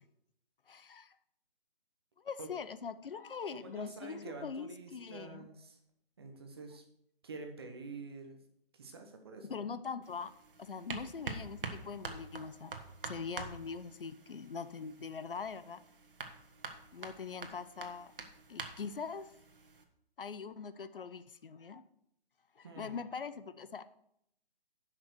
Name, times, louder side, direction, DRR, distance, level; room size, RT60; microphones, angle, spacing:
voice 1, 0.7-1.2 2.2-5.5 9.5-10.3 10.6-12.7 13.0-15.8 16.9-18.1 18.5-19.3 20.2-21.8 22.6-23.8, left 5 dB, 60° left, 13 dB, 0.7 m, -42 dB
voice 2, 3.5-5.8 6.2-6.8 7.2-8.4 8.7-9.6 22.6-23.0, right 3 dB, 25° right, 5 dB, 1.0 m, -47 dB
sound 1, 10.0-19.8, right 4 dB, 60° right, 1.6 m, -47 dB
11.0 x 6.0 x 6.1 m, 0.75 s
hypercardioid pair, 170°, 31 cm